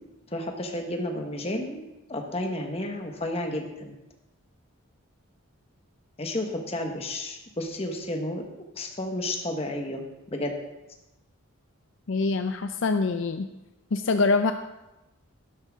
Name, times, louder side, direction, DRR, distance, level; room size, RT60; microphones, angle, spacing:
voice 1, 0.3-1.8 2.1-3.9 6.2-8.4 8.7-10.0 10.3-10.6, left 1 dB, 25° left, 3 dB, 1.3 m, -31 dB
voice 2, 12.1-13.5 13.9-14.5, left 3 dB, 60° left, 8 dB, 0.5 m, -24 dB
12.0 x 11.0 x 3.6 m, 0.99 s
head